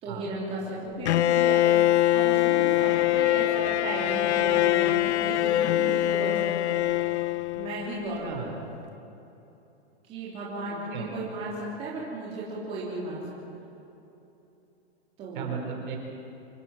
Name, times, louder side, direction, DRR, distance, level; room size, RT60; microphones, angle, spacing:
voice 1, 0.0-6.8 7.5-8.3 10.0-13.2 15.2-15.5, right 2 dB, 20° right, -6 dB, 3.3 m, -35 dB
Bowed string instrument, 1.1-8.0, left 14 dB, 90° left, 0.6 m, -23 dB
voice 2, 10.7-11.2 15.3-16.0, right 7 dB, 45° right, 2 dB, 4.4 m, -36 dB
26.0 x 15.5 x 7.6 m, 3.0 s
supercardioid pair, 175°, 33 cm